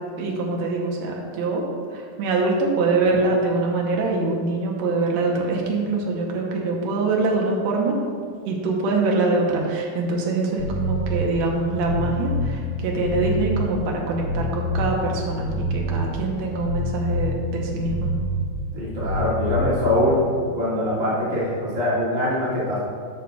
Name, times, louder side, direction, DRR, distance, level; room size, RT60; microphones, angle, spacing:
voice 1, 0.2-1.7 1.9-8.0 8.5-18.2, right 3 dB, 70° right, -1 dB, 1.7 m, -24 dB
sound 1, 10.6-20.2, equal, 75° left, 4.0 m, -27 dB
voice 2, 18.7-20.2 20.5-22.8, left 1 dB, 35° right, -8 dB, 1.5 m, -23 dB
11.0 x 6.4 x 2.3 m, 2.1 s
omnidirectional pair, 4.3 m